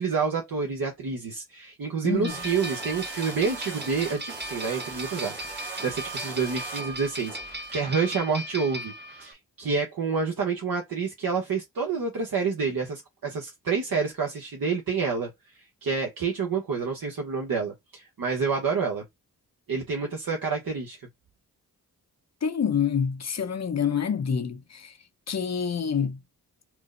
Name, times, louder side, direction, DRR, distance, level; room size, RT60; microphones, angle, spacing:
voice 1, 0.0-15.3 15.8-19.1 19.7-21.0, right 5 dB, 65° right, 1.0 m, -28 dB
voice 2, 2.0-2.3 22.4-24.9 25.3-26.2, left 7 dB, 45° left, 0.7 m, -27 dB
sound 1, 2.2-9.3, right 1 dB, 30° right, 0.9 m, -37 dB
sound 2, 2.3-7.8, right 4 dB, 85° right, 1.4 m, -40 dB
4.5 x 2.0 x 2.4 m
cardioid pair, 50°, 37 cm